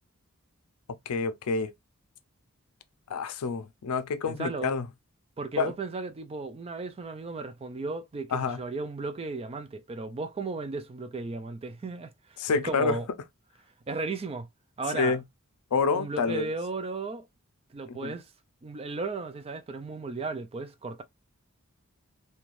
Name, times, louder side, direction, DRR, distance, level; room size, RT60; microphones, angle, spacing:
voice 1, 1.1-1.7 3.1-4.9 5.6-5.7 8.3-8.6 12.4-13.0 14.9-15.2 15.7-16.5 18.0-18.2, left 4 dB, 85° left, 0.5 m, -28 dB
voice 2, 4.3-4.7 5.4-13.1 13.9-14.5 14.8-15.2 15.9-17.2 17.7-18.2 18.6-21.0, right 3 dB, 25° right, 0.4 m, -35 dB
3.1 x 2.2 x 2.5 m
head